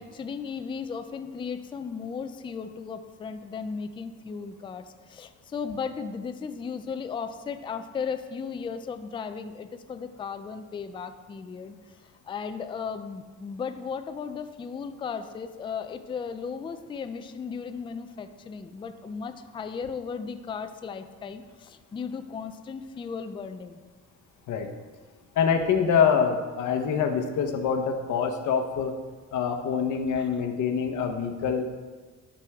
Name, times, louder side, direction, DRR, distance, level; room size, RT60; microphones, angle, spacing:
voice 1, 0.0-23.8 30.2-30.4, left 6 dB, 15° left, 8 dB, 0.3 m, -36 dB
voice 2, 25.3-28.9 29.3-31.6, left 6 dB, 75° left, 5 dB, 1.0 m, -25 dB
11.5 x 6.1 x 3.5 m, 1.4 s
cardioid pair, 155°, 31 cm